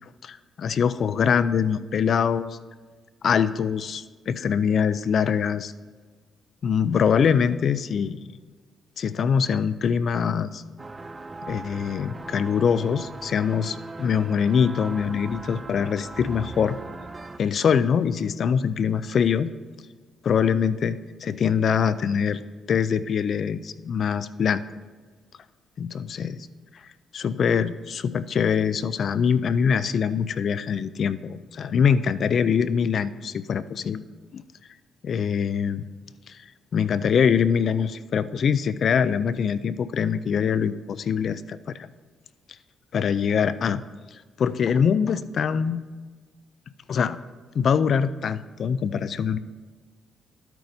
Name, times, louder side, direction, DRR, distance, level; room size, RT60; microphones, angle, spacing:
voice 1, 0.2-2.5 3.2-5.7 6.6-8.2 9.0-10.6 11.4-16.8 17.4-19.5 20.2-22.4 22.7-24.6 25.8-26.5 27.1-34.0 34.3-34.4 35.0-35.9 36.3-36.4 36.7-41.9 42.9-43.8 44.4-45.8 46.9-47.2 47.5-49.4, left 7 dB, 55° left, 15 dB, 0.3 m, -23 dB
sound 1, 10.8-17.4, right 3 dB, 25° right, 0.4 m, -39 dB
12.5 x 8.9 x 2.7 m, 1.4 s
cardioid pair, 90°, 0 cm